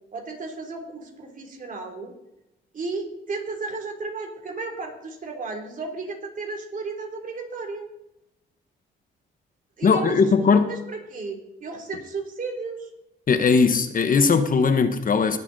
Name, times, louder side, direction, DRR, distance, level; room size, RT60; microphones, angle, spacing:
voice 1, 0.1-2.1 2.7-7.9 9.8-10.2 10.7-12.9, right 3 dB, 40° right, 2 dB, 3.2 m, -34 dB
voice 2, 9.8-10.7 13.3-15.4, left 5 dB, 45° left, 9 dB, 1.1 m, -19 dB
19.5 x 7.2 x 4.1 m, 0.88 s
cardioid pair, 90°, 20 cm